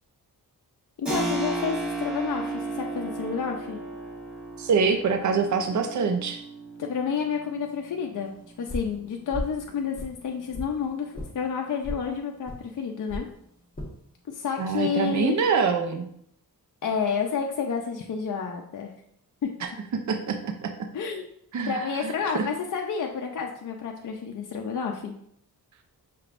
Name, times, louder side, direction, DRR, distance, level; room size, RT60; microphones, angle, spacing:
voice 1, 1.0-3.8 6.8-8.3 8.6-13.3 14.3-15.4 16.8-18.9 19.4-19.5 20.9-21.3 21.7-25.1, left 6 dB, 55° left, 1 dB, 0.5 m, -30 dB
Keyboard (musical), 1.1-11.4, right 2 dB, ahead, 1.3 m, -36 dB
voice 2, 4.6-6.4 14.6-16.1 19.6-19.7 20.1-20.7 21.5-22.5, right 5 dB, 50° right, 6 dB, 0.5 m, -25 dB
sound 1, 8.7-9.0 9.3-9.6 9.9-10.7 11.1-11.3 11.8-12.0 12.5-12.6 13.1-13.3 13.7-13.9 14.5-14.9, left 1 dB, 20° left, 1.2 m, -35 dB
5.9 x 3.3 x 2.5 m, 0.69 s
wide cardioid pair, 95°, 38 cm